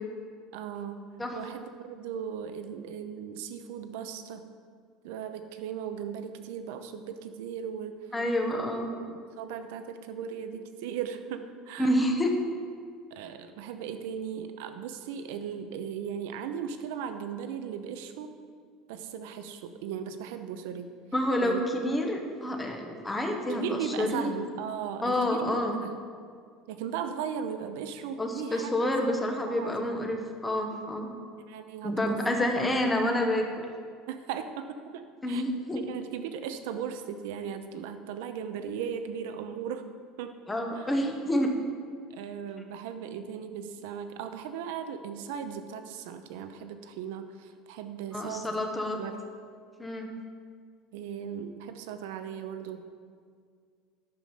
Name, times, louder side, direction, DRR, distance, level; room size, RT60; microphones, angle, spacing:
voice 1, 0.5-4.4 5.0-8.1 8.4-8.6 9.0-12.0 13.1-18.3 18.9-20.9 21.4-21.6 23.5-25.5 25.8-25.9 26.7-29.2 29.5-29.9 31.3-32.2 34.1-35.4 35.9-39.9 40.2-40.4 40.7-41.0 42.1-49.2 50.9-52.8, right 8 dB, 80° right, 8 dB, 0.8 m, -37 dB
voice 2, 8.1-8.9 11.8-12.3 21.1-24.4 25.0-25.8 28.2-31.1 31.8-33.5 35.2-35.8 40.5-41.5 48.1-49.0 49.8-50.1, left 1 dB, 10° left, 2 dB, 1.0 m, -28 dB
10.5 x 7.0 x 5.6 m, 2.1 s
cardioid pair, 170°, 0 cm